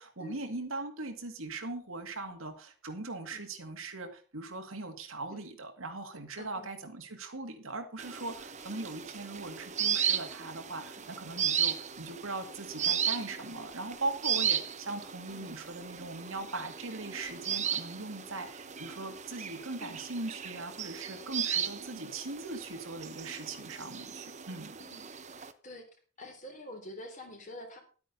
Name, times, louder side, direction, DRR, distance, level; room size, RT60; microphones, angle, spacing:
voice 1, 0.0-24.8, right 2 dB, 70° right, 5 dB, 2.2 m, -40 dB
voice 2, 6.4-6.7 8.7-8.8 15.3-15.5 19.8-19.9 21.9-22.0 24.8-25.0 25.4-25.8 26.2-27.8, left 1 dB, 35° left, 3 dB, 3.4 m, -47 dB
sound 1, 8.0-25.5, right 8 dB, 35° right, 0.9 m, -36 dB
12.0 x 8.9 x 5.4 m, 0.38 s
head